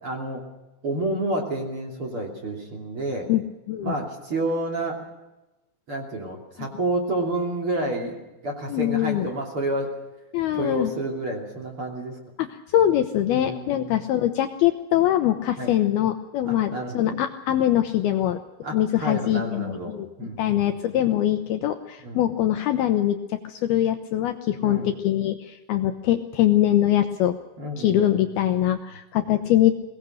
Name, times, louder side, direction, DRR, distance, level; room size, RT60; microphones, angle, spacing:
voice 1, 0.0-0.4 0.8-3.3 3.8-5.0 5.9-8.2 8.4-10.0 10.5-12.2 13.3-14.0 15.6-15.7 16.5-17.2 18.6-20.6 22.0-22.2 24.6-24.9 27.6-28.2, right 1 dB, 35° right, 1 dB, 2.9 m, -29 dB
voice 2, 8.7-9.3 10.3-10.9 12.4-12.5 12.7-18.4 18.7-20.1 20.4-27.4 27.8-29.7, left 12 dB, 90° left, 7 dB, 2.2 m, -23 dB
22.0 x 19.5 x 6.5 m, 1.0 s
omnidirectional pair, 5.7 m